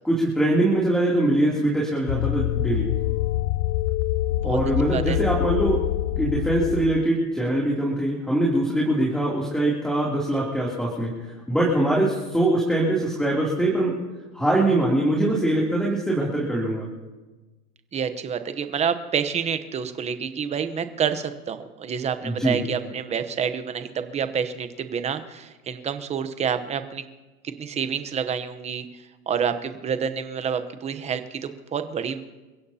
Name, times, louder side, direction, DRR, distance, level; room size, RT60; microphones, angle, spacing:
voice 1, 0.0-2.9 4.4-5.8 6.2-13.9 14.3-16.9 22.2-22.6, right 1 dB, ahead, -4 dB, 2.9 m, -23 dB
sound 1, 2.1-7.1, left 14 dB, 50° left, 0.5 m, -25 dB
voice 2, 4.9-5.2 17.9-27.1 27.4-28.9 29.3-32.2, right 7 dB, 15° right, 10 dB, 0.9 m, -28 dB
29.5 x 16.0 x 2.8 m, 1.2 s
supercardioid pair, 145°, 46 cm